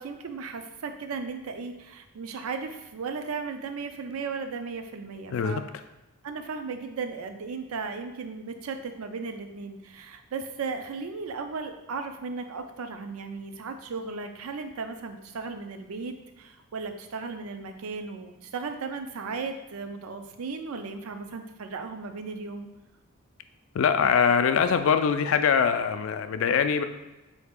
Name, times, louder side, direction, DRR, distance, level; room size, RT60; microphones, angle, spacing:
voice 1, 0.0-5.7 6.2-22.7, right 4 dB, 85° right, 7 dB, 0.5 m, -36 dB
voice 2, 5.3-5.6 23.7-26.8, left 6 dB, 65° left, 9 dB, 0.3 m, -23 dB
4.1 x 2.8 x 3.6 m, 1.0 s
head